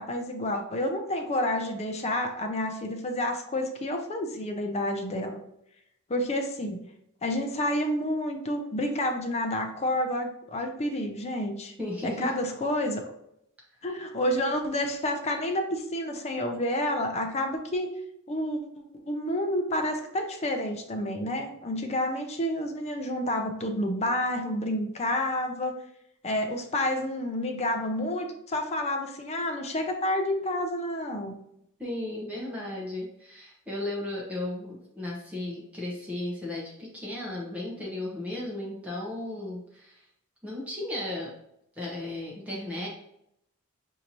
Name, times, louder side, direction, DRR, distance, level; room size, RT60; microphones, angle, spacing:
voice 1, 0.0-5.4 6.1-6.8 7.2-11.7 12.0-13.0 13.8-17.9 18.3-18.6 18.9-25.7 26.2-31.4, left 1 dB, 30° left, 4 dB, 0.5 m, -29 dB
voice 2, 11.8-12.3 31.8-40.0 40.4-41.3 41.8-42.9, left 1 dB, 5° right, -5 dB, 0.9 m, -35 dB
6.3 x 2.7 x 2.9 m, 0.76 s
head